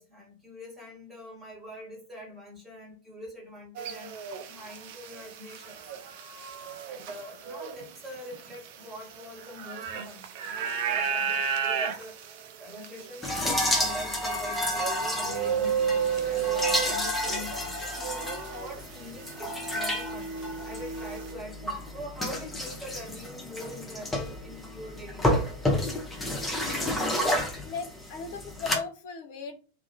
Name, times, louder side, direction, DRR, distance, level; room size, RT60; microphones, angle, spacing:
voice 1, 0.0-4.1 4.5-5.9 6.5-10.3 10.6-12.3 12.6-13.3 13.7-25.5, equal, 10° right, -3 dB, 1.2 m, -44 dB
sound 1, 3.8-19.0 19.3-21.3, right 7 dB, 50° right, 0.3 m, -33 dB
sound 2, 13.2-28.8, left 1 dB, 10° left, 0.6 m, -31 dB
voice 2, 27.6-29.6, left 5 dB, 50° left, 6 dB, 0.5 m, -37 dB
2.3 x 2.0 x 2.8 m, 0.36 s
figure-of-eight pair, 90°, 0 cm